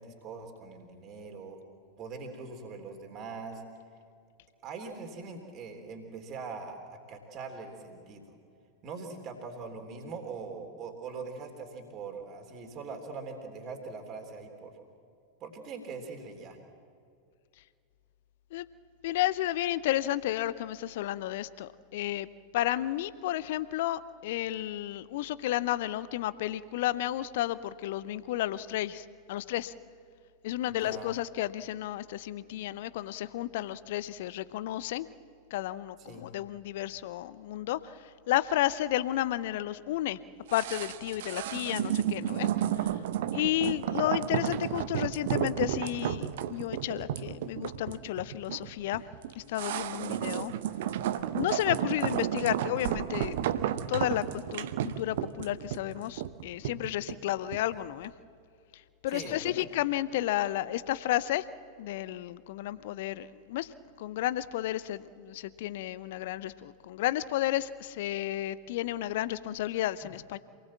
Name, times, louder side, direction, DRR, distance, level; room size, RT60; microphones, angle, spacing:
voice 1, 0.0-1.6 2.0-3.6 4.6-8.3 8.8-14.8 15.4-16.6 30.7-31.1 36.0-36.3 59.1-59.7, right 4 dB, 35° right, 3 dB, 3.4 m, -42 dB
voice 2, 19.0-22.3 22.5-29.7 30.4-35.1 35.5-37.9 38.3-40.2 40.5-42.5 43.3-49.0 49.4-50.5 51.3-53.4 53.9-58.1 59.0-61.4 61.8-63.7 64.0-70.4, left 14 dB, 55° left, 16 dB, 0.7 m, -32 dB
sound 1, 40.5-57.7 58.0-58.1, right 11 dB, 55° right, 0.9 m, -32 dB
27.5 x 20.0 x 7.5 m, 2.3 s
figure-of-eight pair, 90°, 0 cm